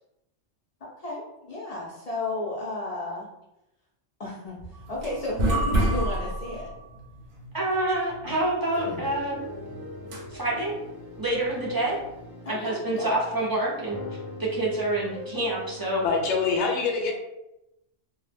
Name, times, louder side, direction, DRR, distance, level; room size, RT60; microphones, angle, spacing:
voice 1, 0.8-3.3 4.2-4.6 4.9-6.7 8.9-9.0 12.4-13.1, left 2 dB, 55° left, -4 dB, 0.4 m, -33 dB
sound 1, 4.7-12.2, right 1 dB, 55° right, 0.7 m, -31 dB
voice 2, 7.5-9.4 10.3-10.7 11.2-12.0 12.5-14.0 14.4-16.1, right 1 dB, 40° right, -5 dB, 0.3 m, -27 dB
sound 2, 8.7-16.6, left 2 dB, ahead, 0.7 m, -41 dB
voice 3, 16.0-17.1, left 5 dB, 80° left, 1 dB, 0.9 m, -24 dB
2.1 x 2.0 x 3.2 m, 0.89 s
omnidirectional pair, 1.2 m